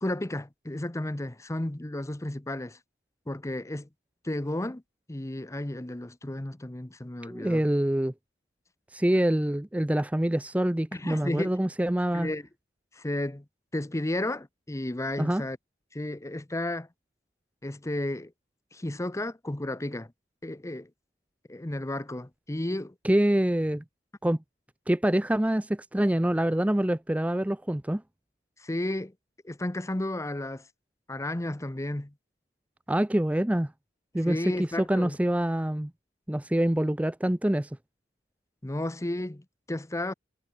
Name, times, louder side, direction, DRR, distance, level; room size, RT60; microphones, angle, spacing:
voice 1, 0.0-2.8 3.3-3.9 4.2-4.8 5.1-7.6 10.9-11.5 12.1-12.5 12.9-13.4 13.7-15.6 15.9-16.9 17.6-18.3 18.7-20.1 20.4-20.9 21.5-22.9 28.6-29.1 29.4-30.7 31.1-32.1 34.2-35.2 38.6-40.1, left 1 dB, 15° left, 0.8 m, -33 dB
voice 2, 7.3-8.1 8.9-12.3 15.2-15.4 23.0-23.8 24.2-24.4 24.9-28.0 32.9-33.7 34.1-35.9 36.3-37.7, right 1 dB, 10° right, 0.5 m, -25 dB
head